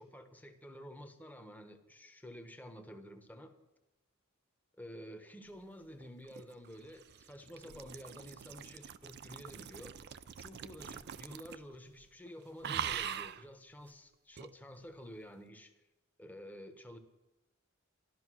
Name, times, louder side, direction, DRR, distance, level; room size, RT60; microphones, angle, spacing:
voice 1, 0.0-3.5 4.8-9.9 10.4-15.7 16.2-17.0, equal, 10° left, 6 dB, 1.1 m, -50 dB
sound 1, 6.0-11.8 12.0-12.3 12.6-13.4 14.4-14.5, right 8 dB, 50° right, 0.5 m, -43 dB
13.0 x 12.0 x 6.2 m, 1.0 s
head